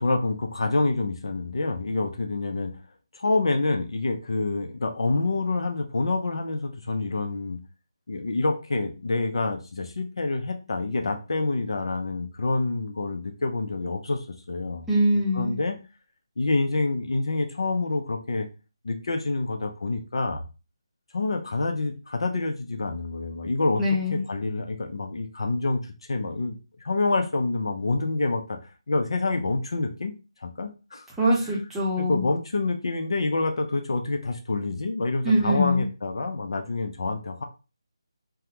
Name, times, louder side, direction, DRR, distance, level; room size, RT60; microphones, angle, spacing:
voice 1, 0.0-2.7 3.1-7.6 8.1-14.9 15.3-15.7 16.4-18.5 18.8-20.4 21.1-23.8 24.3-25.8 26.1-28.6 28.9-30.1 30.4-31.1 32.0-37.4, left 3 dB, 65° left, 4 dB, 0.6 m, -27 dB
voice 2, 14.9-15.6 23.8-24.3 31.2-32.2 35.2-35.9, equal, 5° right, -7 dB, 0.8 m, -23 dB
3.4 x 2.2 x 2.9 m, 0.31 s
figure-of-eight pair, 160°, 3 cm